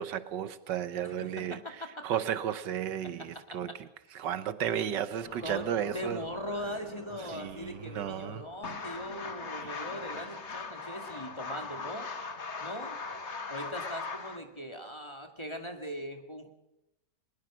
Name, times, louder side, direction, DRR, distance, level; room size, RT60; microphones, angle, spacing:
voice 1, 0.0-1.6 2.0-3.7 4.1-6.2 7.3-8.4, right 9 dB, 80° right, 1.6 m, -33 dB
voice 2, 1.0-2.1 3.0-3.6 4.1-4.3 5.4-12.1 12.6-13.0 13.5-16.5, equal, 15° left, 2.1 m, -40 dB
sound 1, 5.2-10.6, equal, 75° left, 6.4 m, -51 dB
sound 2, 8.6-14.4, left 4 dB, 40° left, 1.8 m, -39 dB
21.5 x 20.5 x 6.2 m
omnidirectional pair, 1.9 m